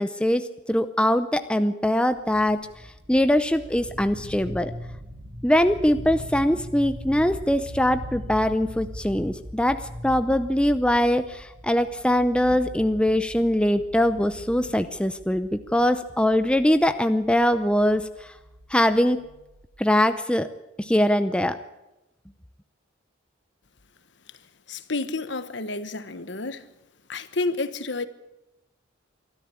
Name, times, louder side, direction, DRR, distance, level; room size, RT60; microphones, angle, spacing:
voice 1, 0.0-2.6 3.1-4.7 5.4-18.3 18.7-19.2 19.8-20.5 20.8-21.6, left 1 dB, 5° left, 0.6 m, -22 dB
sound 1, 2.1-20.0, equal, 65° right, 5.3 m, -41 dB
voice 2, 24.7-26.6 27.1-28.1, left 3 dB, 60° left, 1.2 m, -30 dB
24.0 x 13.0 x 8.4 m
head